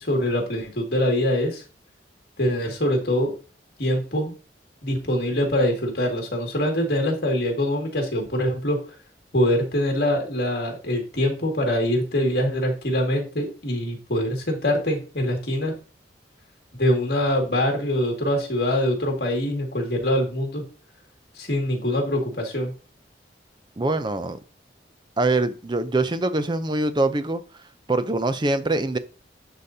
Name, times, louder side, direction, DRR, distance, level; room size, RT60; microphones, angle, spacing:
voice 1, 0.0-1.6 2.4-3.3 3.8-4.3 4.8-8.8 9.3-15.7 16.8-20.6 21.4-22.7, left 1 dB, 55° left, 2.1 m, -24 dB
voice 2, 23.8-24.4 25.2-27.4 27.9-29.0, right 2 dB, 25° right, 0.5 m, -23 dB
11.5 x 4.0 x 2.7 m
head